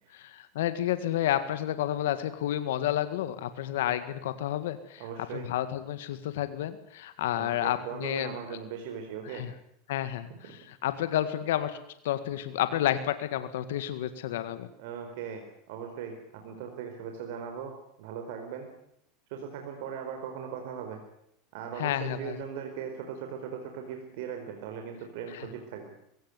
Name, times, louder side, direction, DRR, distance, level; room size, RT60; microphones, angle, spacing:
voice 1, 0.1-5.0 5.3-8.3 9.3-9.5 9.9-10.3 10.7-11.8 12.0-14.7 21.8-22.4 25.3-25.5, left 12 dB, 85° left, 11 dB, 1.8 m, -30 dB
voice 2, 5.0-5.5 7.3-9.5 10.4-10.5 14.6-18.7 19.3-21.0 21.5-25.9, right 7 dB, 70° right, 4 dB, 4.4 m, -39 dB
21.5 x 17.0 x 9.7 m, 0.72 s
supercardioid pair, 125°, 0 cm